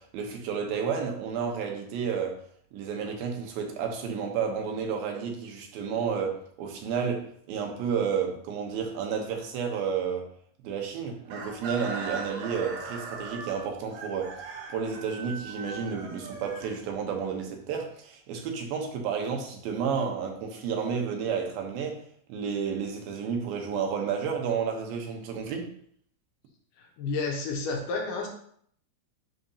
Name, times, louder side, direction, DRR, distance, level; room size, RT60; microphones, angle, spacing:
voice 1, 0.0-2.4 2.7-10.3 10.6-14.4 14.7-22.0 22.3-25.7, right 6 dB, 85° right, 3 dB, 2.8 m, -31 dB
Chicken rooster, 11.3-17.2, right 4 dB, 65° right, 2.2 m, -39 dB
voice 2, 27.0-28.3, left 3 dB, 75° left, 1 dB, 2.5 m, -30 dB
10.5 x 4.0 x 2.8 m, 0.63 s
omnidirectional pair, 4.1 m